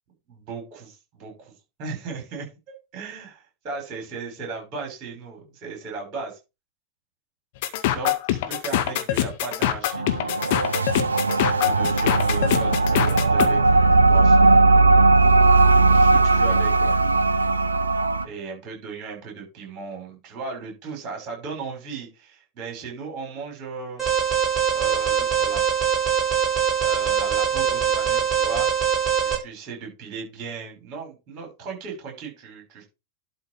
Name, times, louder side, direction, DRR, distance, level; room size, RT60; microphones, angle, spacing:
voice 1, 0.3-1.5 1.8-6.4 7.9-10.1 11.4-14.7 15.9-16.9 18.2-24.1 24.7-25.6 26.8-28.9 29.2-32.8, right 4 dB, 35° right, 1 dB, 6.2 m, -36 dB
sound 1, 7.6-13.5, left 13 dB, 50° left, 1.0 m, -24 dB
sound 2, 9.9-18.2, right 3 dB, 75° right, 0.5 m, -18 dB
Alarm, 24.0-29.4, right 8 dB, 10° right, 5.4 m, -22 dB
11.5 x 4.2 x 5.0 m, 0.27 s
figure-of-eight pair, 90°, 0 cm